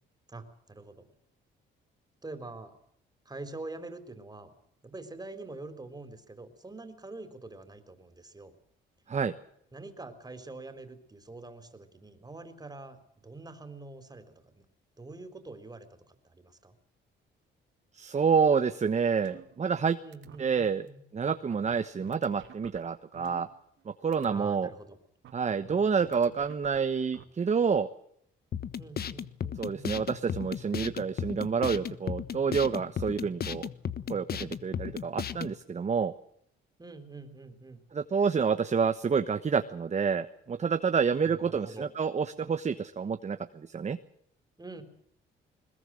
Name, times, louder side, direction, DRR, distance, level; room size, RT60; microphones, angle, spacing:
voice 1, 0.3-1.1 2.2-2.8 3.2-4.5 4.8-8.5 9.7-14.6 15.0-16.7 20.0-21.0 24.3-25.0 28.8-29.9 36.8-37.8 41.2-41.9 44.6-44.8, right 2 dB, 20° right, 9 dB, 4.1 m, -45 dB
voice 2, 17.9-20.0 20.4-20.8 21.1-23.5 23.9-24.7 25.3-27.9 29.6-33.7 34.1-36.1 37.9-44.0, right 6 dB, 35° right, 10 dB, 1.2 m, -28 dB
sound 1, 19.2-19.8 20.1-20.4 20.9-21.0 21.2-23.8 24.1-24.4 25.2-27.2, right 9 dB, 75° right, 2.9 m, -51 dB
sound 2, 28.5-35.5, left 8 dB, 50° left, 1.3 m, -35 dB
21.5 x 21.0 x 7.8 m, 0.71 s
cardioid pair, 90°, 20 cm